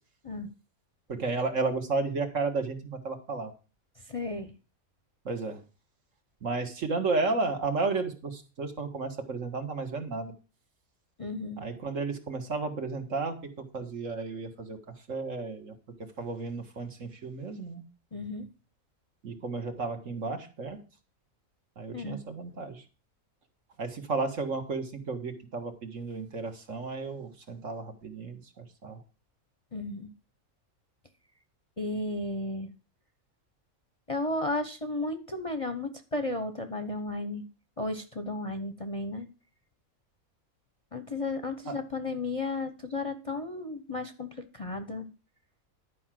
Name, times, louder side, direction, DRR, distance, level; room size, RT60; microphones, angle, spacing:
voice 1, 1.1-3.5 5.3-5.6 6.4-10.3 11.6-13.4 13.7-14.8 15.1-17.8 19.2-20.8 21.8-22.8 23.8-29.0 41.7-41.8, right 3 dB, 60° right, 5 dB, 2.0 m, -33 dB
voice 2, 4.0-4.5 11.2-11.6 18.1-18.5 21.9-22.2 29.7-30.1 31.8-32.7 34.1-37.4 37.8-39.3 40.9-45.1, left 2 dB, 30° left, 7 dB, 0.8 m, -34 dB
11.5 x 5.0 x 7.6 m, 0.33 s
omnidirectional pair, 1.5 m